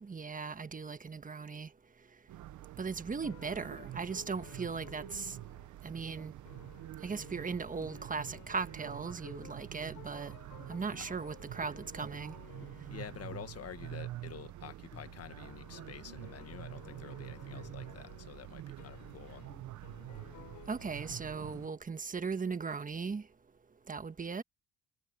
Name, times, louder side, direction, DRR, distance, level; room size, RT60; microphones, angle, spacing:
voice 1, 0.0-1.7 2.8-5.4 5.8-6.3 7.0-10.3 10.7-12.3 20.7-23.2 23.9-24.4, right 5 dB, 25° right, 1.4 m, -38 dB
sound 1, 2.3-21.7, right 14 dB, 75° right, 0.9 m, -47 dB
sound 2, 3.2-5.7 6.4-21.5, left 14 dB, 90° left, 5.9 m, -56 dB
sound 3, 7.8-8.3 8.6-8.7 8.9-13.0 13.3-13.6 13.9-14.2 14.5-14.6 14.9-15.8 16.5-16.6 17.5-18.4 18.9-21.8, left 5 dB, 40° left, 6.7 m, -57 dB
voice 2, 12.9-19.5, left 9 dB, 55° left, 1.5 m, -48 dB
cardioid pair, 90°, 30 cm